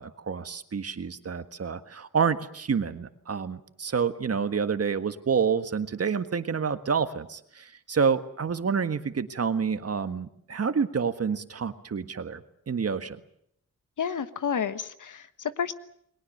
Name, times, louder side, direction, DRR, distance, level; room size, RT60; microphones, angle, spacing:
voice 1, 0.0-13.2, right 6 dB, 50° right, 10 dB, 1.6 m, -28 dB
voice 2, 14.0-15.7, left 7 dB, 75° left, 12 dB, 1.4 m, -30 dB
29.5 x 22.0 x 6.7 m, 0.71 s
wide cardioid pair, 125°, 31 cm